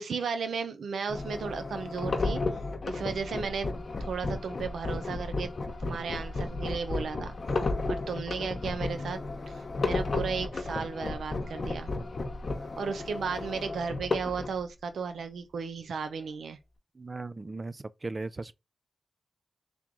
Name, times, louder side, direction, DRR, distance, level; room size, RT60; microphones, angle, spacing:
voice 1, 0.0-2.4 2.9-3.7 4.0-5.5 5.8-7.3 7.9-9.2 9.5-11.9 12.8-16.6, right 5 dB, 90° right, 0.5 m, -34 dB
sound 1, 1.1-14.6, left 3 dB, 55° left, 0.9 m, -33 dB
voice 2, 17.0-18.5, right 3 dB, 40° right, 0.4 m, -37 dB
3.5 x 3.0 x 3.7 m
cardioid pair, 60°, 0 cm